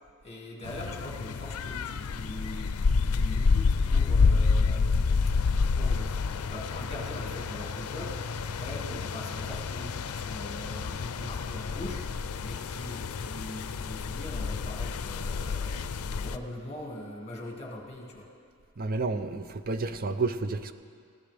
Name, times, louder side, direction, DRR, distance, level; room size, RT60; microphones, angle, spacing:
voice 1, 0.2-2.7 3.0-5.2 5.7-12.0 12.4-15.9 16.2-18.3, left 1 dB, 30° left, -1 dB, 2.2 m, -42 dB
sound 1, 0.6-16.4, left 4 dB, 85° left, 0.5 m, -29 dB
voice 2, 18.8-20.7, right 3 dB, 40° right, 10 dB, 0.5 m, -30 dB
20.0 x 15.0 x 3.4 m, 2.2 s
head